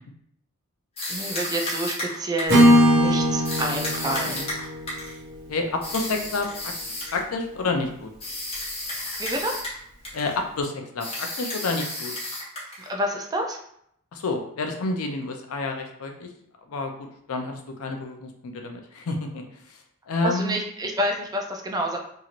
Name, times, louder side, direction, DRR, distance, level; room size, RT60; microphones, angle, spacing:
sound 1, 1.0-2.7 3.4-5.2 5.8-7.2 8.2-9.8 10.0-10.4 11.0-12.9, left 1 dB, 25° left, 1.1 m, -32 dB
voice 1, 1.1-4.5 9.0-9.5 12.8-13.6 20.2-22.0, equal, 20° right, 1 dB, 0.4 m, -28 dB
Acoustic guitar / Strum, 2.5-6.5, equal, 55° right, 0.7 m, -21 dB
voice 2, 5.5-6.7 7.1-8.1 10.1-12.1 14.1-16.3 16.7-19.8 20.1-20.6, left 3 dB, 85° left, 4 dB, 0.5 m, -29 dB
3.0 x 2.7 x 2.5 m, 0.70 s
head